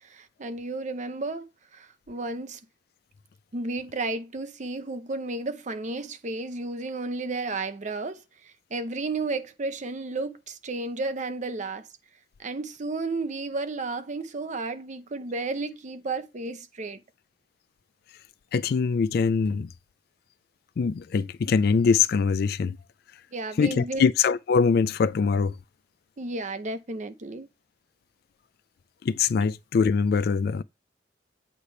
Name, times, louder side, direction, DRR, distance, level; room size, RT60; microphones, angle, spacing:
voice 1, 0.0-2.6 3.5-11.9 12.4-17.0 23.3-24.1 26.2-27.5, right 3 dB, 40° right, 0.7 m, -33 dB
voice 2, 18.5-19.7 20.8-22.8 23.6-25.6 29.0-30.6, left 5 dB, 55° left, 0.3 m, -23 dB
8.2 x 3.3 x 5.6 m
head